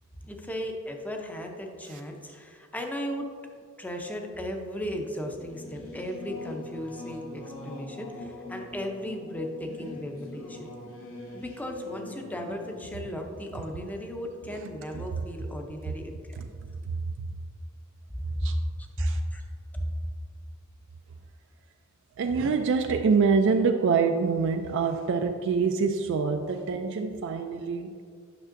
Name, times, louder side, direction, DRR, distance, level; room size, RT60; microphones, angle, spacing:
voice 1, 0.2-3.3 3.8-10.7 11.3-16.5 18.1-18.5 19.0-19.4 19.7-19.9, equal, 10° left, 3 dB, 0.6 m, -35 dB
Singing / Musical instrument, 5.2-15.3, left 1 dB, 70° left, 1.0 m, -43 dB
voice 2, 22.2-28.0, right 5 dB, 60° right, 5 dB, 0.3 m, -25 dB
8.9 x 6.0 x 2.6 m, 2.1 s
head